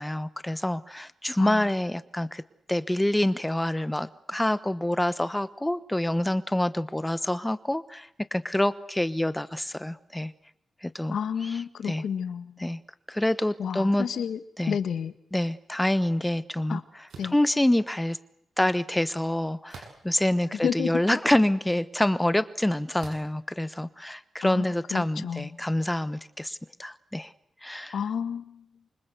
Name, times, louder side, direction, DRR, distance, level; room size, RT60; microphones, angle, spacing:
voice 1, 0.0-2.4 2.7-10.3 10.8-11.2 11.4-12.0 12.6-12.8 13.1-14.3 14.6-14.8 15.3-18.2 18.6-27.3 27.6-28.0, left 1 dB, 5° left, 15 dB, 1.0 m, -27 dB
voice 2, 11.1-12.8 13.6-14.4 14.7-15.1 16.7-16.8 17.2-17.3 20.6-21.0 24.4-25.6 27.9-28.6, left 7 dB, 75° left, 12 dB, 1.7 m, -31 dB
sound 1, 17.1-17.4 19.7-20.2 20.9-21.0 23.0-23.4, right 4 dB, 85° right, 7.9 m, -45 dB
27.0 x 25.0 x 8.1 m, 0.69 s
wide cardioid pair, 155°, 0 cm